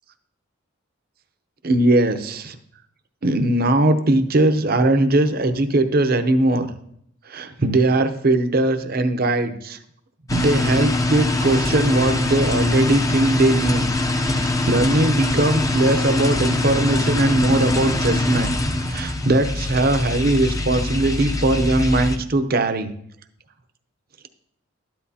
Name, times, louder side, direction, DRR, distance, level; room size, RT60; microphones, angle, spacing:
voice 1, 1.6-2.6 3.2-6.7 7.3-9.8 10.3-13.9 14.3-18.5 18.8-22.9, right 2 dB, 45° right, 9 dB, 0.7 m, -20 dB
sound 1, 10.3-22.2, left 2 dB, 15° left, 0.6 m, -23 dB
13.0 x 10.5 x 2.8 m, 0.69 s
head